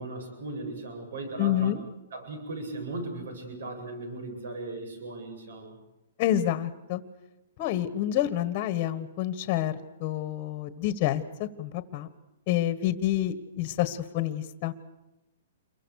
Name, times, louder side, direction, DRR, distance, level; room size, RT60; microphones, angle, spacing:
voice 1, 0.0-1.7 2.1-5.8, right 2 dB, 75° right, 6 dB, 7.9 m, -37 dB
voice 2, 1.4-1.8 6.2-7.0 7.6-9.7 10.0-12.1 12.5-14.7, left 12 dB, 30° left, 12 dB, 1.5 m, -28 dB
28.5 x 23.0 x 6.6 m, 0.95 s
hypercardioid pair, 165°, 0 cm